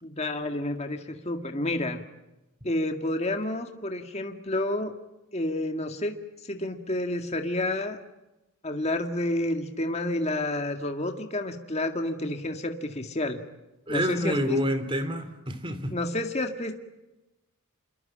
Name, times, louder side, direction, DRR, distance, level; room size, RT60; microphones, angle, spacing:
voice 1, 0.0-2.0 2.6-4.9 5.3-6.1 6.4-8.0 8.6-13.4 13.9-14.6 15.9-16.7, left 1 dB, 30° left, 2.0 m, -30 dB
voice 2, 13.9-16.0, equal, 25° right, 2.8 m, -28 dB
28.0 x 23.0 x 8.9 m
head